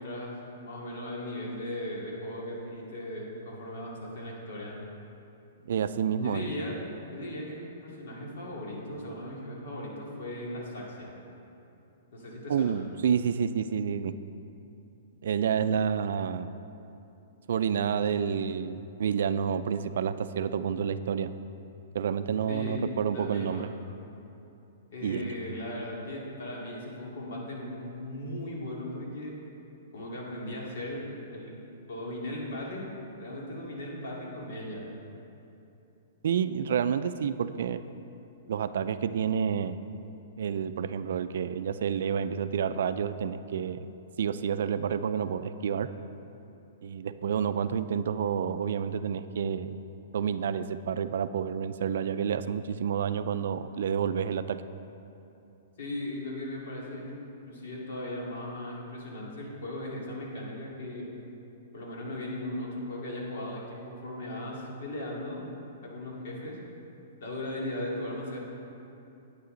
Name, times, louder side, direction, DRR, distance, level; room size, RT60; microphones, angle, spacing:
voice 1, 0.0-4.8 6.2-6.7 7.1-11.1 12.1-12.8 22.5-22.8 23.1-23.6 24.9-29.3 29.9-31.0 31.3-31.5 31.9-32.8 33.2-34.8 55.8-57.2 57.4-61.1 61.7-65.4 65.8-66.6 67.2-68.4, left 1 dB, 65° left, -3 dB, 2.4 m, -37 dB
voice 2, 5.7-6.5 12.5-14.2 15.2-16.5 17.5-21.3 21.9-23.7 25.0-25.3 36.2-37.8 38.5-39.8 40.4-43.9 44.2-45.9 46.8-49.8 50.1-54.6, right 7 dB, 70° right, 12 dB, 0.4 m, -29 dB
9.9 x 8.9 x 3.9 m, 2.8 s
hypercardioid pair, 155°, 0 cm